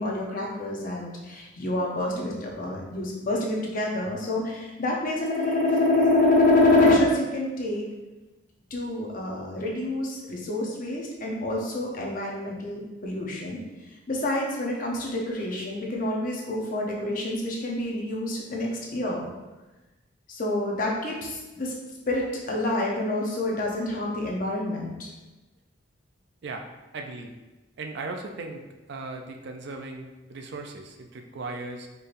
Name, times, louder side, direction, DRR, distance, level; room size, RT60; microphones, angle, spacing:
voice 1, 0.0-7.8 8.7-13.6 14.1-19.3 20.3-21.7 22.1-25.1, left 2 dB, 40° left, -2 dB, 0.7 m, -26 dB
voice 2, 26.9-27.3 27.8-28.6 28.9-31.9, right 3 dB, 55° right, 4 dB, 0.4 m, -37 dB
4.4 x 3.2 x 2.5 m, 1.1 s
head